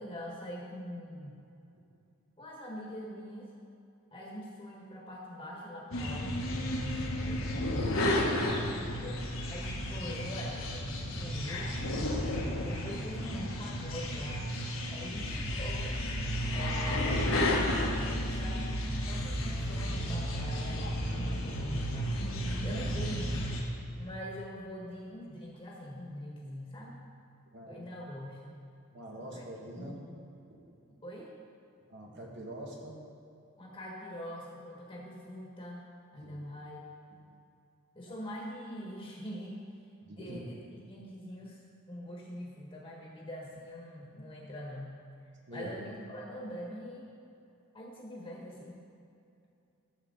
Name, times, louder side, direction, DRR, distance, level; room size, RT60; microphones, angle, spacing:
voice 1, 0.0-1.4 2.4-3.5 4.1-6.5 7.2-7.8 8.3-11.8 12.6-14.5 14.9-16.0 16.5-18.7 19.1-23.5 24.0-27.0 27.7-28.6 29.3-29.4 29.7-30.1 31.0-31.3 33.6-35.8 36.1-36.9 37.9-39.6 40.1-41.6 41.9-45.0 45.5-47.1 47.7-48.8, equal, 25° left, -3 dB, 1.5 m, -43 dB
sound 1, 5.9-23.6, left 1 dB, 70° left, 1.4 m, -32 dB
voice 2, 28.9-30.0 31.9-33.0 36.2-36.3 37.1-37.2 38.1-38.2 40.0-40.4 45.5-45.7, right 1 dB, 55° right, -1 dB, 1.7 m, -45 dB
13.5 x 7.3 x 4.0 m, 2.6 s
head